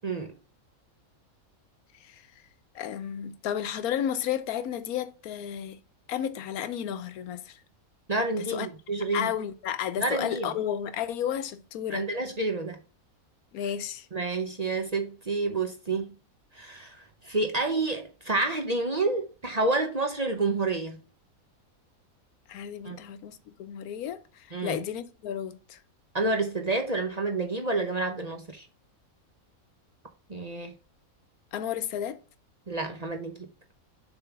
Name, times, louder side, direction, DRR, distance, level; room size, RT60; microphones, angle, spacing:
voice 1, 0.0-0.3 8.1-9.3 10.0-10.5 11.9-12.8 14.1-16.1 16.5-17.0 17.2-21.0 22.8-23.0 24.5-24.8 26.1-28.7 30.3-30.7 32.7-33.5, right 3 dB, 35° right, 0.7 m, -29 dB
voice 2, 2.7-5.8 6.1-7.6 8.4-8.7 9.1-12.1 13.5-14.1 22.5-25.8 31.5-32.2, left 9 dB, 85° left, 1.2 m, -32 dB
7.0 x 3.8 x 5.9 m
omnidirectional pair, 1.5 m